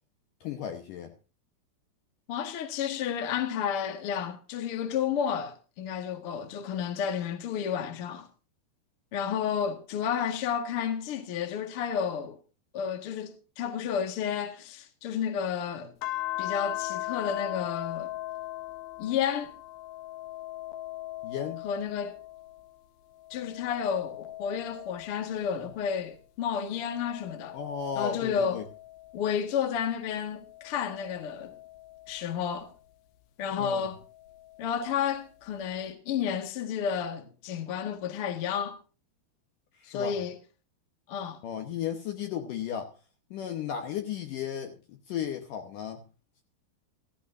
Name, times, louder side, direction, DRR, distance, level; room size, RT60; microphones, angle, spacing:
voice 1, 0.4-1.1 21.2-21.7 27.5-28.6 33.6-33.9 39.8-40.1 41.4-42.9 43.3-46.0, left 9 dB, 70° left, 2.3 m, -35 dB
voice 2, 2.3-8.3 9.1-12.4 12.7-15.9 16.4-18.1 19.0-19.5 21.6-22.2 23.3-27.6 28.0-28.6 29.1-31.6 32.1-32.7 33.4-34.0 34.6-38.8 39.8-40.4 41.1-41.4, left 8 dB, 50° left, 1.7 m, -31 dB
sound 1, 16.0-22.7 23.2-26.1 26.7-29.5 30.2-32.7 34.0-35.1, left 16 dB, 85° left, 1.8 m, -40 dB
15.5 x 14.5 x 2.6 m
omnidirectional pair, 4.7 m